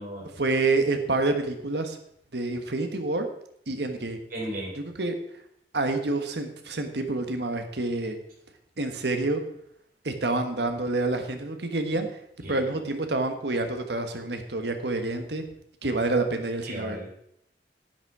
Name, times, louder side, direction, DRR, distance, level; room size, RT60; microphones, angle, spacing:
voice 1, 0.4-2.0 2.3-3.3 3.7-4.2 5.0-5.1 5.7-8.2 8.8-9.4 10.0-12.1 12.5-15.4 15.8-17.0, right 2 dB, 75° right, 6 dB, 1.4 m, -27 dB
voice 2, 4.3-4.7 12.4-12.6 16.7-17.3, right 1 dB, 50° right, -2 dB, 4.3 m, -35 dB
10.5 x 9.0 x 4.9 m, 0.73 s
head